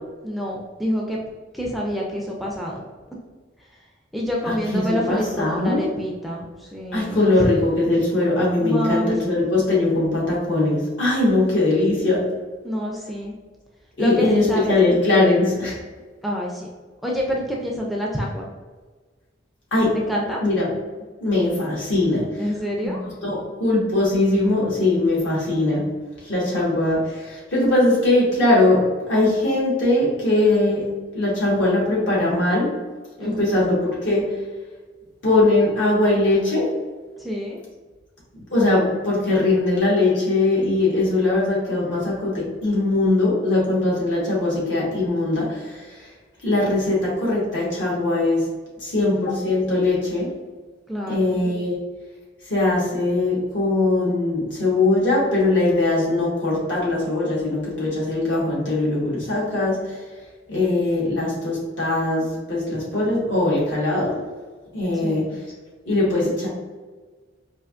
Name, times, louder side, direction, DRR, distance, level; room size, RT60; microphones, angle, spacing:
voice 1, 0.2-1.2 1.5-2.8 4.1-7.3 8.6-9.2 12.6-13.3 14.0-14.7 16.2-16.7 17.0-18.5 19.9-20.4 22.4-23.0 33.2-33.7 37.2-37.6 50.9-51.4 65.0-65.4, equal, ahead, -2 dB, 0.4 m, -27 dB
voice 2, 4.4-5.8 6.9-12.2 14.0-15.8 19.7-20.0 20.4-20.7 21.2-22.4 22.8-25.8 26.2-28.8 29.1-30.8 31.1-32.7 33.2-34.3 35.2-36.7 38.3-46.0 46.4-48.4 48.8-50.3 51.1-51.7 52.5-60.0 60.5-64.1 64.7-65.2 65.9-66.5, left 2 dB, 70° left, -5 dB, 1.4 m, -21 dB
4.4 x 2.7 x 2.4 m, 1.4 s
head